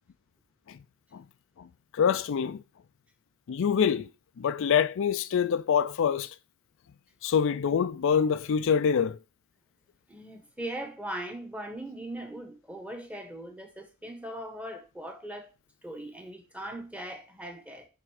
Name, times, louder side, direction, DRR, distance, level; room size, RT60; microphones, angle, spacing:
voice 1, 1.9-2.6 3.5-4.1 4.4-6.3 7.2-9.2, left 7 dB, 60° left, 0.4 m, -25 dB
voice 2, 10.1-15.5 15.8-17.9, right 1 dB, 5° right, 1.1 m, -40 dB
7.5 x 3.6 x 4.8 m
head